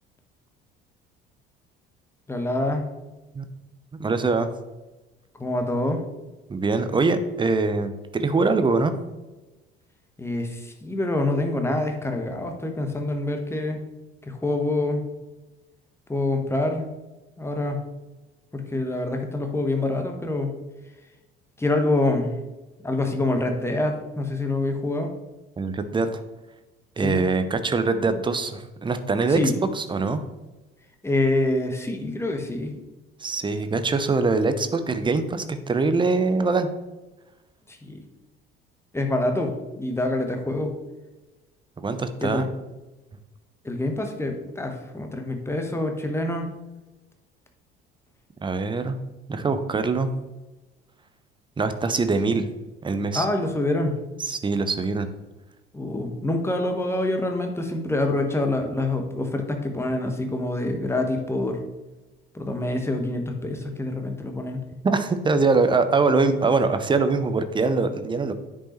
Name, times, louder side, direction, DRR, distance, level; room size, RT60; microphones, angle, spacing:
voice 1, 2.3-2.8 5.4-6.0 10.2-13.8 14.3-15.1 16.1-16.9 17.4-17.9 18.5-20.6 21.6-22.3 22.8-25.1 27.0-27.2 29.3-29.5 31.0-32.7 37.8-38.0 38.9-40.7 42.2-42.5 43.6-46.5 53.1-54.0 55.7-61.6 62.3-64.6, left 2 dB, 10° left, 4 dB, 1.3 m, -26 dB
voice 2, 4.0-4.5 6.5-8.9 25.6-26.2 27.0-30.2 33.2-36.7 41.8-42.5 48.4-49.0 49.3-50.1 51.6-52.5 52.8-53.2 54.2-55.1 64.8-68.3, right 3 dB, 15° right, 10 dB, 0.7 m, -23 dB
9.9 x 5.4 x 3.1 m, 1.1 s
figure-of-eight pair, 55°, 29 cm